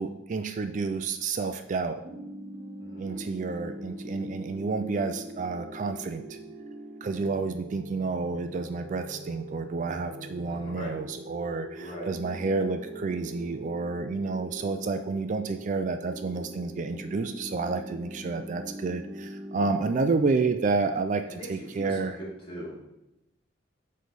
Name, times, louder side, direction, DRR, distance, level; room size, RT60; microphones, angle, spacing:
voice 1, 0.0-2.0 3.0-6.4 7.0-22.2, right 4 dB, 40° right, 8 dB, 0.3 m, -30 dB
sound 1, 2.0-20.0, right 1 dB, 60° right, 1.1 m, -42 dB
voice 2, 2.8-3.2 10.5-10.9 11.7-12.1 21.3-22.9, equal, 30° left, -5 dB, 2.2 m, -41 dB
7.9 x 3.2 x 5.2 m, 0.89 s
head